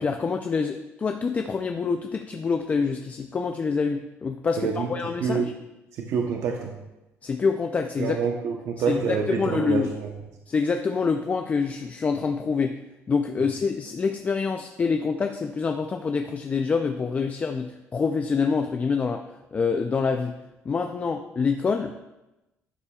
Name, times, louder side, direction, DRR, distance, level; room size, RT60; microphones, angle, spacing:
voice 1, 0.0-5.5 7.2-8.3 8.9-9.9 10.5-12.8 13.1-19.2 19.5-20.4 20.6-22.0, left 5 dB, 30° left, 5 dB, 0.4 m, -26 dB
voice 2, 4.6-4.9 5.2-5.5 5.9-6.7 8.0-10.1, right 6 dB, 70° right, 1 dB, 0.8 m, -27 dB
11.0 x 7.1 x 2.4 m, 0.99 s
cardioid pair, 125°, 5 cm